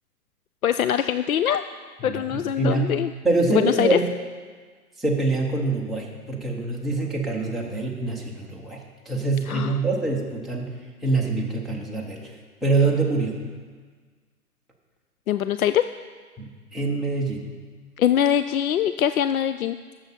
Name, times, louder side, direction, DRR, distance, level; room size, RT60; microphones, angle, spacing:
voice 1, 0.6-1.6 2.0-3.1 3.5-4.0 9.5-9.8 15.3-15.8 18.0-19.8, left 10 dB, 65° left, 11 dB, 0.5 m, -22 dB
voice 2, 2.0-2.9 3.2-4.1 5.0-8.8 9.1-10.7 11.0-12.2 12.6-13.4 16.4-17.4, right 3 dB, ahead, -2 dB, 0.6 m, -25 dB
18.5 x 7.2 x 4.2 m, 1.5 s
figure-of-eight pair, 125°, 46 cm